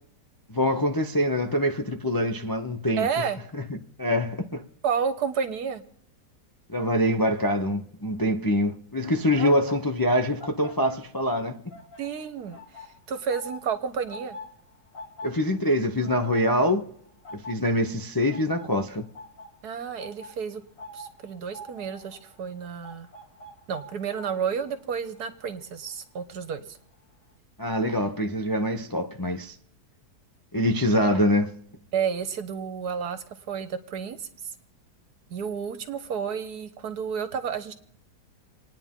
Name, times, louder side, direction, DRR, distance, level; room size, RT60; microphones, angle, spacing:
voice 1, 0.5-3.1 3.7-4.6 6.7-11.6 15.2-16.9 17.3-19.1 27.6-29.6 30.5-31.5, equal, 30° left, 0.4 m, -25 dB
voice 2, 3.0-3.4 4.8-5.8 9.4-9.5 12.0-14.4 19.6-20.6 20.9-23.1 23.7-26.8 31.9-34.3 35.3-37.7, right 7 dB, 70° right, 1.6 m, -31 dB
sound 1, 9.2-11.4 11.7-26.5 26.8-27.1, left 1 dB, 50° left, 2.4 m, -46 dB
29.0 x 9.8 x 3.7 m
omnidirectional pair, 1.8 m